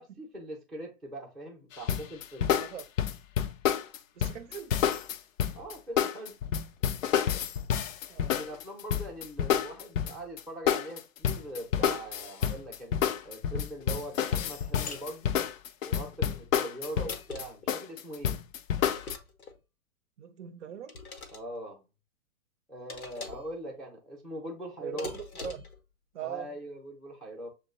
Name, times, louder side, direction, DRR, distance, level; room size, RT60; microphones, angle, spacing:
voice 1, 0.0-2.5 5.5-6.4 8.2-13.0 13.2-15.3 15.8-18.4 21.3-21.9 22.7-25.2 26.2-27.5, right 1 dB, ahead, 0.6 m, -41 dB
sound 1, 1.9-10.4 10.7-19.1, left 9 dB, 65° left, 0.5 m, -28 dB
voice 2, 2.5-2.8 4.2-4.8 8.1-8.4 20.2-20.9 24.8-25.6 26.1-26.5, right 9 dB, 60° right, 0.6 m, -41 dB
sound 2, 14.9-15.1 16.8-17.7 18.8-19.6 20.9-21.4 22.9-23.5 25.0-25.8, left 4 dB, 85° left, 1.0 m, -43 dB
6.3 x 2.2 x 2.5 m
figure-of-eight pair, 115°, 42 cm